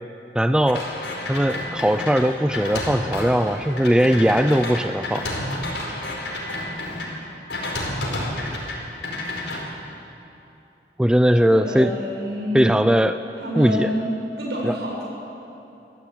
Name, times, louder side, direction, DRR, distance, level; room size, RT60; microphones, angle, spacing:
voice 1, 0.3-0.9 1.3-5.3 11.0-11.9 12.5-13.2 13.6-13.9 14.6-14.8, equal, 5° right, 10 dB, 0.4 m, -19 dB
sound 1, 0.7-7.1 7.5-8.7 9.0-9.6, left 1 dB, 90° left, 4.7 m, -30 dB
voice 2, 11.5-12.7 13.4-14.1 14.4-15.1, equal, 65° right, -3 dB, 7.8 m, -27 dB
25.0 x 16.0 x 8.7 m, 2.9 s
head